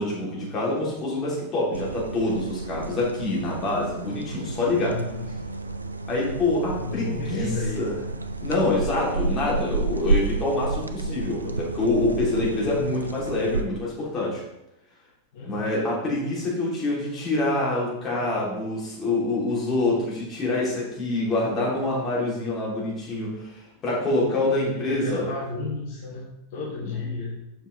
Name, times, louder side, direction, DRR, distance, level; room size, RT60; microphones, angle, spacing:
voice 1, 0.0-5.0 6.1-7.5 7.7-8.0 8.4-14.4 15.4-25.3, left 2 dB, 25° left, -5 dB, 3.1 m, -26 dB
sound 1, 1.7-13.6, right 3 dB, 80° right, 0.4 m, -31 dB
voice 2, 4.8-5.5 6.7-7.9 15.3-15.6 24.7-27.4, left 3 dB, 50° left, -4 dB, 1.4 m, -33 dB
7.8 x 5.4 x 3.9 m, 0.86 s
figure-of-eight pair, 90°, 0 cm